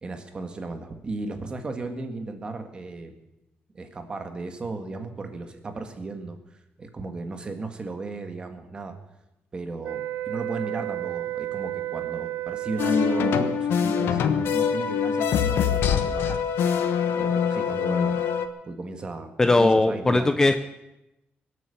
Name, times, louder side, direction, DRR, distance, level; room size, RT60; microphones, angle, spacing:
voice 1, 0.0-3.2 3.7-6.4 6.8-9.0 9.5-16.4 17.1-18.3 18.6-20.3, right 3 dB, 25° right, 6 dB, 1.7 m, -35 dB
sound 1, 9.8-13.7, right 15 dB, 80° right, 0.5 m, -32 dB
sound 2, 12.8-18.5, left 7 dB, 75° left, 1.2 m, -24 dB
voice 2, 19.4-20.6, left 2 dB, 15° left, 8 dB, 0.6 m, -19 dB
23.0 x 8.2 x 7.0 m, 0.92 s
cardioid pair, 165°, 4 cm